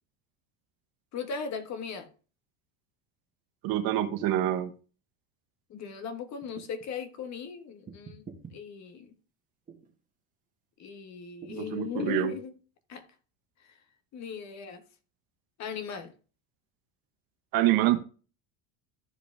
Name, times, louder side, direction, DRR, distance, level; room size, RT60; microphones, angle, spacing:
voice 1, 1.1-2.1 5.7-8.2 8.5-9.1 10.8-12.5 12.9-13.0 14.1-14.8 15.6-16.1, left 6 dB, 40° left, 1.5 m, -37 dB
voice 2, 3.6-4.7 11.5-12.3 17.5-18.0, right 13 dB, 60° right, 1.3 m, -26 dB
sound 1, 6.4-6.9 7.9-8.6 9.7-9.9 11.4-11.7, right 5 dB, 20° right, 1.9 m, -47 dB
14.0 x 4.9 x 3.4 m
cardioid pair, 135°, 40 cm